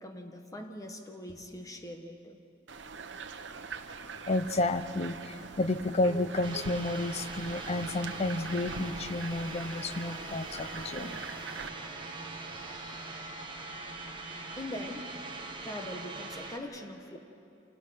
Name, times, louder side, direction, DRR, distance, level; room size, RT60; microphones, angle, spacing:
voice 1, 0.0-2.4 14.6-15.1 15.6-17.2, left 1 dB, 20° left, 4 dB, 1.3 m, -42 dB
sound 1, 2.7-11.7, right 4 dB, 75° right, 1.0 m, -44 dB
voice 2, 4.3-11.2, left 2 dB, 35° left, 12 dB, 0.6 m, -31 dB
sound 2, 6.4-16.6, right 3 dB, 25° right, 1.6 m, -42 dB
27.5 x 17.5 x 6.0 m, 2.7 s
head